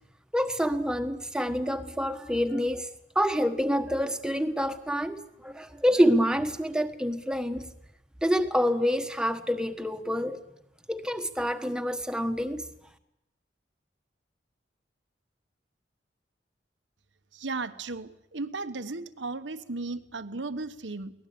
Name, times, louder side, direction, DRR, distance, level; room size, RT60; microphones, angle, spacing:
voice 1, 0.3-2.9 3.1-7.6 8.2-10.4 10.9-12.6, equal, 5° right, 1.3 m, -27 dB
voice 2, 17.3-21.1, right 3 dB, 85° right, 1.3 m, -35 dB
23.0 x 19.0 x 8.6 m
head